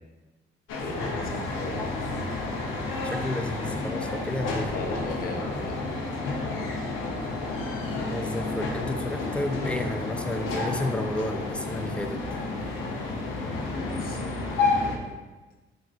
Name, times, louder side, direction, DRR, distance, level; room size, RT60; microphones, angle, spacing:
sound 1, 0.7-15.0, left 3 dB, 85° left, 0.7 m, -30 dB
voice 1, 0.7-2.0 4.7-5.8 13.4-15.1, left 1 dB, 50° left, 1 dB, 0.7 m, -38 dB
voice 2, 3.0-4.7 8.1-12.2, left 1 dB, 5° left, 5 dB, 0.3 m, -32 dB
4.8 x 3.7 x 2.4 m, 1.1 s
cardioid pair, 90°, 20 cm